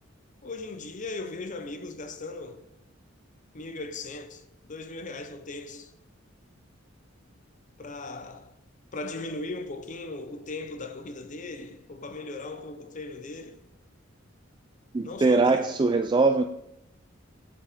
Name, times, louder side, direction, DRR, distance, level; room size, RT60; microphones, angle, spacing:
voice 1, 0.4-2.6 3.5-5.9 7.8-8.5 8.9-13.6 15.0-15.7, left 3 dB, 40° left, 0.8 m, -38 dB
voice 2, 14.9-16.4, right 3 dB, 25° right, 0.4 m, -22 dB
8.5 x 7.0 x 5.1 m
head